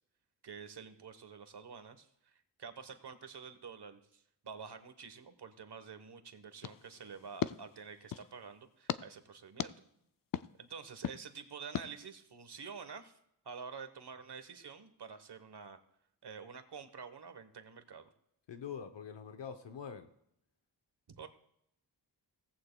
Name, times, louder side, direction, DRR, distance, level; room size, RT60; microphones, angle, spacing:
voice 1, 0.4-9.7 10.6-13.2 13.4-15.8 16.2-18.1 21.1-21.3, right 6 dB, 65° right, 9 dB, 1.2 m, -49 dB
sound 1, 6.6-8.3 8.9-9.0 9.6-9.7 10.3-10.5 11.0-11.2 11.7-11.9, left 9 dB, 50° left, 0.5 m, -38 dB
voice 2, 18.5-20.1, left 7 dB, 80° left, 7 dB, 0.9 m, -44 dB
17.5 x 15.0 x 2.3 m, 0.77 s
wide cardioid pair, 110°, 43 cm